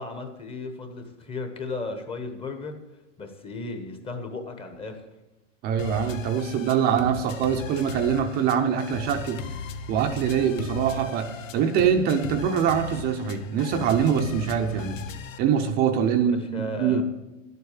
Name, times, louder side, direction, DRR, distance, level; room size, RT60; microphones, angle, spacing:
voice 1, 0.0-2.8 3.2-5.0 16.2-17.0, left 3 dB, 15° left, 6 dB, 1.1 m, -35 dB
voice 2, 5.6-9.4 9.9-15.0 15.4-17.0, right 8 dB, 25° right, 6 dB, 0.7 m, -24 dB
sound 1, 5.8-15.4, left 5 dB, 80° left, 1.2 m, -37 dB
11.5 x 8.2 x 7.2 m, 1.0 s
supercardioid pair, 150°, 38 cm